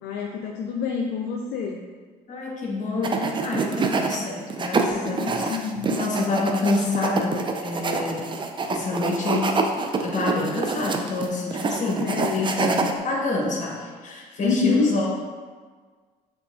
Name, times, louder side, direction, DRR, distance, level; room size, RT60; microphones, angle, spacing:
voice 1, 0.0-1.8 4.9-6.0 12.0-12.5 14.4-15.0, left 5 dB, 65° left, 0 dB, 0.4 m, -27 dB
voice 2, 2.3-5.5 5.9-8.4 8.7-12.8 13.0-15.1, left 3 dB, 40° left, -2 dB, 1.2 m, -27 dB
sound 1, 3.0-4.2 4.5-13.0, right 4 dB, 25° right, 0.4 m, -26 dB
5.8 x 2.8 x 2.4 m, 1.5 s
hypercardioid pair, 65°, 19 cm